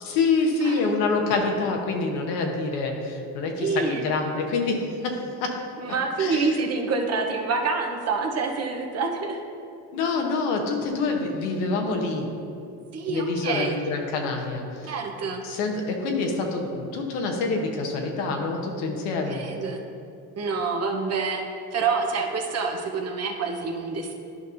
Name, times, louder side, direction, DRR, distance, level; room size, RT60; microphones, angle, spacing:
voice 1, 0.0-5.6 6.2-6.6 9.9-12.3 13.1-14.9 15.4-19.5, left 3 dB, 85° left, 2 dB, 1.1 m, -26 dB
voice 2, 3.6-4.1 5.8-9.4 12.9-13.7 14.8-15.4 19.3-19.8 20.4-21.4 21.7-24.1, right 4 dB, 40° right, 3 dB, 0.9 m, -27 dB
11.0 x 5.4 x 2.6 m, 2.5 s
supercardioid pair, 90°, 38 cm